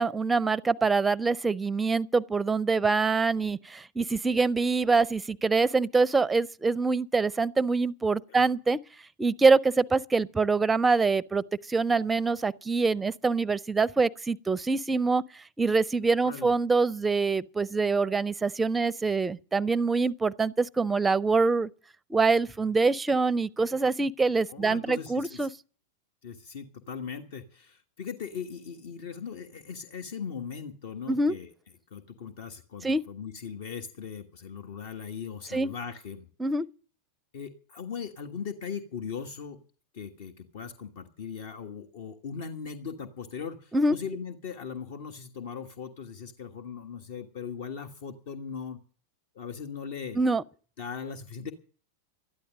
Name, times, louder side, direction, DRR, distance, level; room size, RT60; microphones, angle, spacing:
voice 1, 0.0-8.8 9.2-15.2 15.6-21.7 22.1-25.5 31.1-31.3 32.8-33.0 35.5-35.7 36.4-36.7 43.7-43.9 50.2-50.4, right 4 dB, 10° right, 0.6 m, -25 dB
voice 2, 16.2-16.5 24.5-25.5 26.2-31.5 31.9-36.3 37.3-39.6 39.9-48.8 49.3-50.2 50.8-51.5, left 6 dB, 55° left, 1.4 m, -39 dB
13.0 x 10.5 x 7.6 m
figure-of-eight pair, 90°, 0 cm